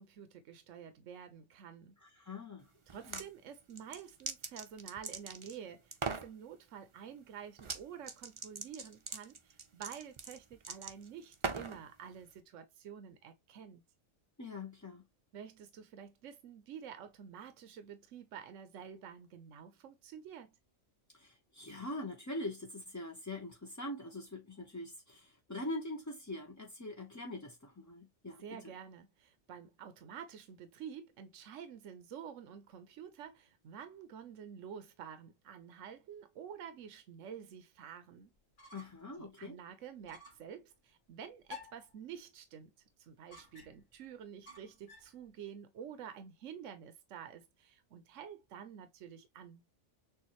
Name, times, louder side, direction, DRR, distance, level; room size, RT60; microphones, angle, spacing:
voice 1, 0.0-2.0 2.9-13.8 15.3-20.5 28.4-38.3 38.6-38.8 39.2-42.7 43.0-49.7, right 8 dB, 80° right, 1.1 m, -49 dB
voice 2, 2.0-2.7 3.1-3.2 14.4-15.0 21.1-28.7 38.7-39.6, left 2 dB, 20° left, 0.6 m, -43 dB
sound 1, 2.9-3.3 3.8-5.6 5.9-6.3 7.6-11.8, right 4 dB, 35° right, 0.6 m, -40 dB
sound 2, 38.4-39.1 39.4-39.5 40.0-40.5 41.5-41.9 43.3-43.9 44.5-45.2, left 4 dB, 65° left, 1.9 m, -53 dB
6.8 x 2.5 x 2.9 m
omnidirectional pair, 1.3 m